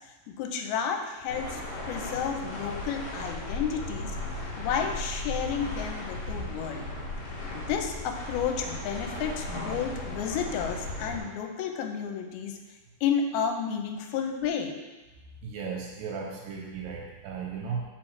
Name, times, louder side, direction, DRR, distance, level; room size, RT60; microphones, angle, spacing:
voice 1, 0.3-1.6 1.9-4.1 4.6-6.8 7.5-12.6 13.0-14.7, left 7 dB, 85° left, 4 dB, 2.5 m, -31 dB
sound 1, 1.3-11.2, left 1 dB, 55° left, 2.5 m, -36 dB
voice 2, 15.4-17.9, right 5 dB, 75° right, -1 dB, 2.2 m, -35 dB
7.1 x 4.8 x 3.2 m, 1.2 s
omnidirectional pair, 4.4 m